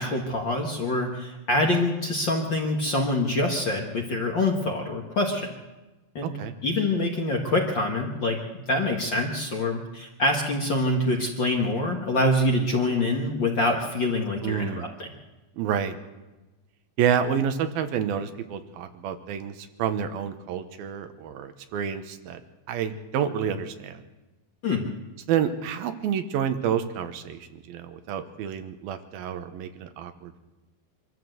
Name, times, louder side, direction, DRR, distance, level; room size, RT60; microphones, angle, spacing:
voice 1, 0.0-5.5 6.1-15.1 24.6-24.9, left 2 dB, 45° left, 1 dB, 1.7 m, -25 dB
voice 2, 6.2-6.5 14.4-14.9 15.6-16.0 17.0-22.4 22.7-24.0 25.3-30.4, right 8 dB, 85° right, 9 dB, 3.0 m, -29 dB
24.5 x 13.5 x 8.0 m, 1.1 s
omnidirectional pair, 4.2 m